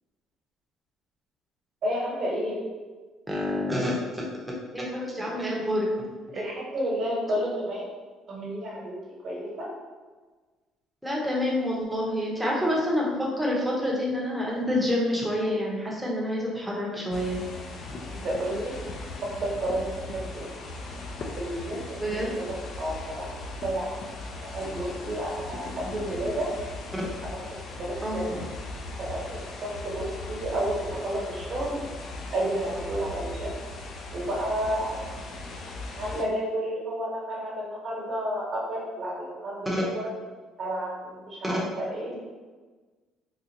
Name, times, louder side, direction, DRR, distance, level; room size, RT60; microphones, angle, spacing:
voice 1, 1.8-2.6 6.3-7.9 8.3-8.9 9.2-9.7 18.1-18.7 19.4-19.9 20.3-20.4 21.4-22.2 22.8-23.3 23.6-23.9 24.5-26.5 27.8-28.3 29.0-31.8 32.3-33.5 34.1-35.1 36.0-40.1 40.6-41.6 41.9-42.1, right 1 dB, 50° right, -4 dB, 1.1 m, -31 dB
voice 2, 3.3-4.2 4.7-5.9 6.3-6.5 11.0-17.5 22.0-22.3 28.0-28.5 36.1-36.2 39.7-39.8 41.4-41.5, left 1 dB, 5° right, -4 dB, 0.8 m, -28 dB
sound 1, 17.1-36.2, left 2 dB, 50° left, 0.5 m, -38 dB
3.7 x 2.4 x 2.8 m, 1.4 s
cardioid pair, 120°, 0 cm